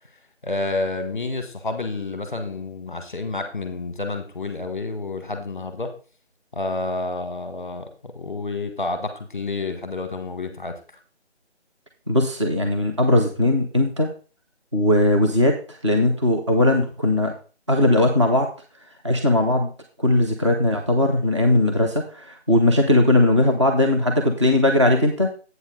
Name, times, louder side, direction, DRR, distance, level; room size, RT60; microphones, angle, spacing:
voice 1, 0.4-5.9 6.5-10.7, left 2 dB, 15° left, 7 dB, 1.1 m, -29 dB
voice 2, 12.1-14.1 14.7-17.3 17.7-18.5 19.0-19.7 20.0-25.3, left 1 dB, 25° right, 2 dB, 0.8 m, -19 dB
8.2 x 7.0 x 3.8 m, 0.35 s
figure-of-eight pair, 175°, 33 cm